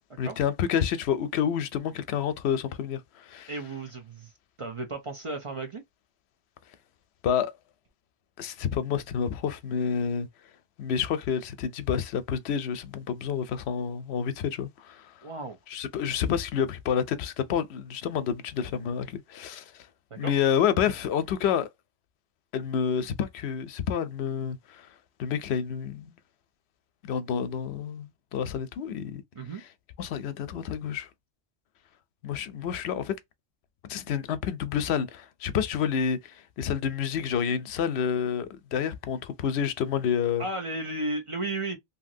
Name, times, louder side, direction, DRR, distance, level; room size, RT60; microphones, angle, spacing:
voice 1, 0.2-3.5 7.2-7.5 8.4-10.3 10.8-15.1 15.7-19.6 20.2-21.7 22.5-24.9 25.2-26.1 27.0-29.2 30.0-31.1 32.2-33.2 33.9-40.4, left 8 dB, 85° left, 0.8 m, -29 dB
voice 2, 3.5-4.3 4.6-5.8 15.2-15.6 20.1-20.4 29.4-29.6 40.4-41.8, right 2 dB, 35° right, 0.6 m, -34 dB
2.9 x 2.7 x 2.6 m
omnidirectional pair, 1.1 m